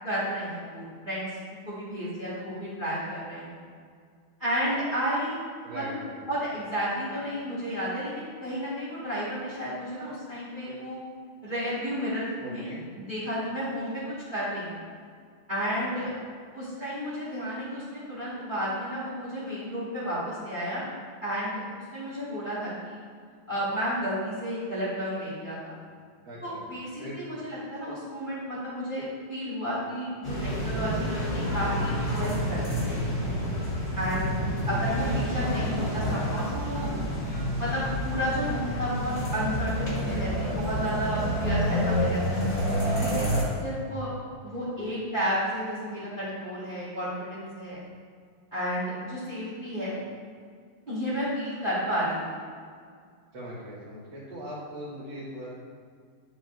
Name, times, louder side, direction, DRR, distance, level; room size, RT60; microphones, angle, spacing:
voice 1, 0.0-1.3 1.7-3.5 4.4-5.4 5.7-6.0 6.3-11.0 11.4-12.7 12.9-14.8 15.5-16.1 16.5-20.9 21.2-21.6 21.9-23.0 23.5-25.8 26.4-33.0 34.0-34.3 34.7-36.9 37.6-42.5 42.9-43.3 43.6-44.1 44.4-47.8 48.5-50.0 50.9-52.4, equal, 25° right, -11 dB, 1.9 m, -32 dB
voice 2, 5.6-6.2 12.4-12.8 26.3-26.6 27.0-27.2 34.6-36.4 39.9-40.3 53.3-55.5, equal, 55° right, -10 dB, 2.2 m, -41 dB
sound 1, 30.2-43.4, equal, 50° left, 2.1 m, -28 dB
10.5 x 4.8 x 2.6 m, 2.1 s
omnidirectional pair, 2.4 m